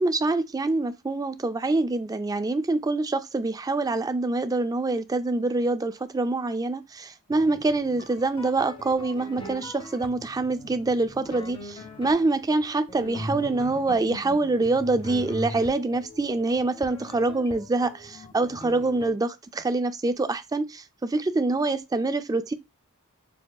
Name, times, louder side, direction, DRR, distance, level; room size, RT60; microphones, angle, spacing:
voice 1, 0.0-22.5, right 2 dB, 15° right, 0.3 m, -25 dB
sound 1, 7.3-19.1, equal, 25° left, 0.8 m, -41 dB
6.8 x 2.8 x 2.3 m
head